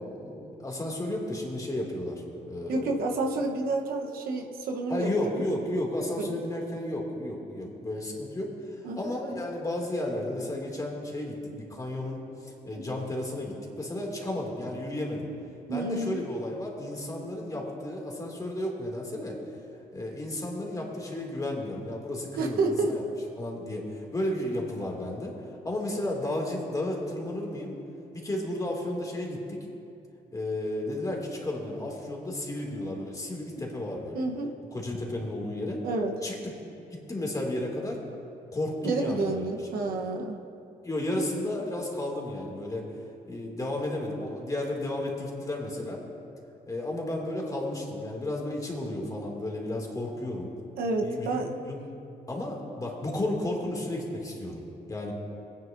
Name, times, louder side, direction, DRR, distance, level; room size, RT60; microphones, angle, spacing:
voice 1, 0.0-3.1 4.9-15.3 15.7-19.4 19.9-23.0 23.4-27.7 28.1-29.6 30.3-34.3 34.7-35.8 36.2-36.5 36.9-38.0 38.5-39.6 40.8-42.9 43.3-46.0 46.7-50.5 51.0-51.8 52.3-55.1, left 1 dB, 25° left, -1 dB, 2.3 m, -33 dB
voice 2, 2.7-5.4 6.2-6.4 8.8-9.0 12.7-12.8 15.7-16.2 22.4-23.0 34.1-34.5 35.8-36.2 38.8-40.4 50.8-51.5, right 3 dB, 80° right, 2 dB, 0.9 m, -29 dB
18.0 x 9.5 x 2.6 m, 2.7 s
cardioid pair, 85°, 15 cm